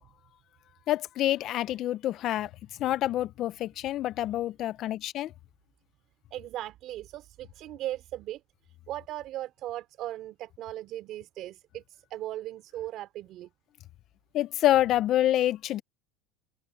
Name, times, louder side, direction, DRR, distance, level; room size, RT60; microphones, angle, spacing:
voice 1, 0.9-2.5 2.8-5.3 14.3-15.8, left 13 dB, 50° left, 0.7 m, -27 dB
voice 2, 6.3-8.4 8.9-13.5, right 14 dB, 50° right, 3.0 m, -38 dB
supercardioid pair, 115°, 0 cm